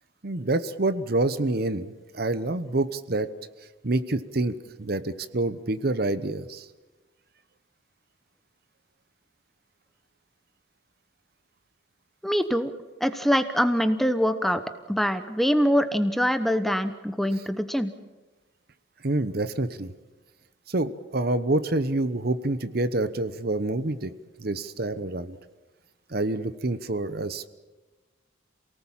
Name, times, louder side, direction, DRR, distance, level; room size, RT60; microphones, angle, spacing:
voice 1, 0.2-3.3 3.8-6.7 19.0-19.9 20.7-24.1 24.4-25.4 26.1-27.5, right 2 dB, 50° right, 12 dB, 1.0 m, -27 dB
voice 2, 12.2-12.7 13.0-14.6 14.9-17.9, equal, ahead, 10 dB, 0.9 m, -24 dB
28.0 x 18.5 x 7.4 m, 1.2 s
head